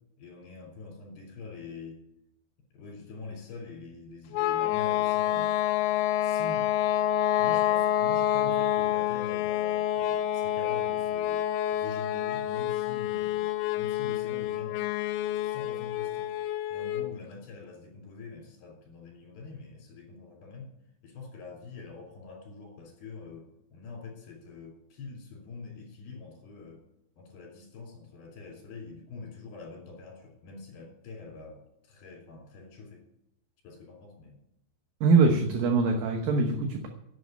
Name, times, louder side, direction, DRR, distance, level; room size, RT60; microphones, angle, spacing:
voice 1, 0.2-2.0 2.7-5.6 6.2-6.7 7.4-11.4 11.7-13.5 13.8-14.9 15.3-16.4 16.7-20.7 21.0-26.8 27.2-33.1 33.6-34.4, left 4 dB, 60° left, 0 dB, 5.3 m, -44 dB
sound 1, 4.3-17.1, left 12 dB, 90° left, 3.0 m, -28 dB
voice 2, 35.0-36.9, right 4 dB, 65° right, 3 dB, 2.5 m, -23 dB
11.0 x 8.6 x 9.2 m, 0.82 s
omnidirectional pair, 5.1 m